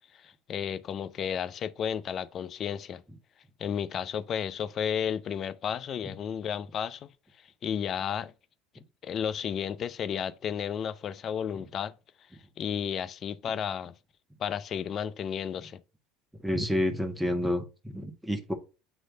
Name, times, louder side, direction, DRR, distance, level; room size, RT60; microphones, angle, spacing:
voice 1, 0.1-3.0 3.6-7.1 7.6-8.3 9.0-11.9 12.6-13.9 14.4-15.8, left 8 dB, 45° left, 0.5 m, -33 dB
voice 2, 16.4-18.5, left 1 dB, 5° right, 1.4 m, -29 dB
8.0 x 3.1 x 3.7 m
hypercardioid pair, 70°, 0 cm